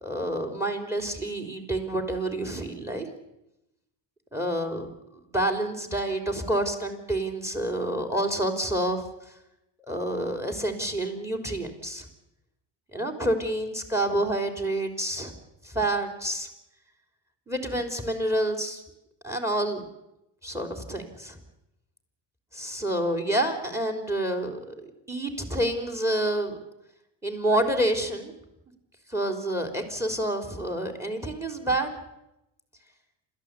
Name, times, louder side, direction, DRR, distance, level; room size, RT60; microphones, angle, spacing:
voice 1, 0.0-3.1 4.3-4.9 5.3-9.0 9.9-12.1 12.9-15.3 15.6-16.5 17.5-18.8 19.2-19.8 20.4-21.4 22.5-24.7 25.1-26.6 27.2-28.3 29.1-31.9, right 1 dB, 5° right, 6 dB, 3.7 m, -28 dB
28.5 x 14.0 x 8.5 m, 0.90 s
cardioid pair, 125°, 43 cm